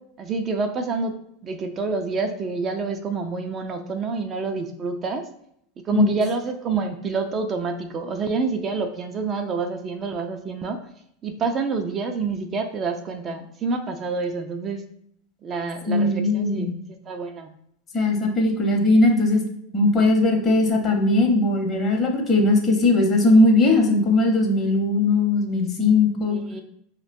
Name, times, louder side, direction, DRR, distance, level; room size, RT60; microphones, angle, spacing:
voice 1, 0.2-1.2 1.4-5.2 5.9-10.8 11.2-14.8 15.4-16.7 17.1-17.5 26.3-26.6, right 4 dB, 35° right, 5 dB, 0.4 m, -27 dB
voice 2, 15.9-16.8 17.9-19.4 19.7-26.4, left 2 dB, 35° left, 1 dB, 0.9 m, -19 dB
4.9 x 2.2 x 2.5 m, 0.72 s
figure-of-eight pair, 85°, 0 cm